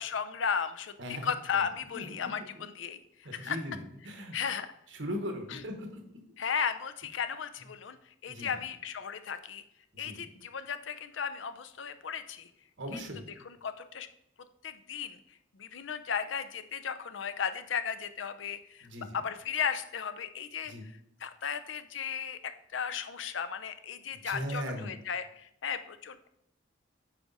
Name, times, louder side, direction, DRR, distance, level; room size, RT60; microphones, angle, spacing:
voice 1, 0.0-3.6 4.3-4.7 5.5-5.6 6.4-8.0 8.2-9.6 10.0-12.5 12.9-13.0 13.6-14.1 14.6-15.2 15.5-18.9 19.1-20.7 21.2-26.3, left 7 dB, 75° left, 11 dB, 0.6 m, -35 dB
voice 2, 1.0-1.6 1.9-2.6 3.2-4.3 4.9-6.0 8.3-8.6 9.9-10.3 12.8-13.3 18.8-19.2 20.6-20.9 24.1-24.9, equal, 75° right, 4 dB, 1.3 m, -39 dB
8.2 x 5.0 x 4.0 m, 0.77 s
head